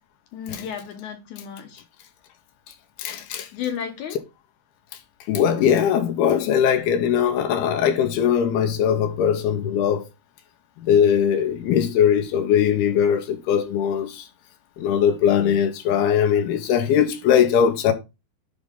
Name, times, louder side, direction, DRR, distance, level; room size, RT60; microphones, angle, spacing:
voice 1, 0.3-1.8 3.5-4.2, left 8 dB, 65° left, 2.0 m, -33 dB
voice 2, 3.0-3.5 5.3-10.0 10.8-14.3 14.8-17.9, left 8 dB, 85° left, 2.9 m, -20 dB
11.0 x 3.9 x 3.7 m
omnidirectional pair, 4.5 m